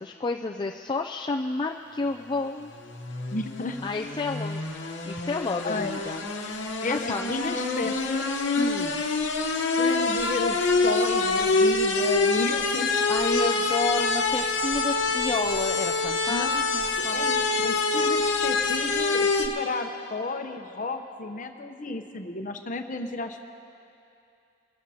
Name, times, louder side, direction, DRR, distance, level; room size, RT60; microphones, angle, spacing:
voice 1, 0.0-2.7 3.8-4.6 5.1-6.3 6.9-7.3 8.6-9.0 13.1-17.3, left 3 dB, 25° left, 2 dB, 0.4 m, -30 dB
sound 1, 2.7-19.5, left 3 dB, 65° left, 1.1 m, -26 dB
voice 2, 3.3-3.8 5.6-6.0 6.8-8.5 9.8-12.9 16.3-16.6 17.0-23.4, left 3 dB, 40° left, 6 dB, 0.8 m, -33 dB
24.5 x 13.5 x 2.8 m, 2.7 s
head